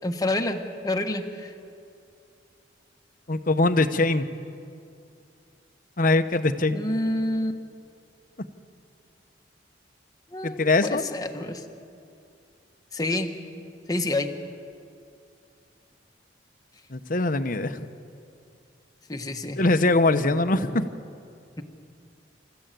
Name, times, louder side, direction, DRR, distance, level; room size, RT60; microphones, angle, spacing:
voice 1, 0.0-1.5 6.7-7.6 10.3-11.6 12.9-13.3 13.9-14.3 19.1-19.6, left 1 dB, 20° left, 4 dB, 1.3 m, -28 dB
voice 2, 3.3-4.2 6.0-6.8 10.4-11.0 16.9-17.9 19.6-20.9, left 2 dB, 50° left, 9 dB, 1.0 m, -22 dB
28.0 x 14.5 x 9.2 m, 2.5 s
head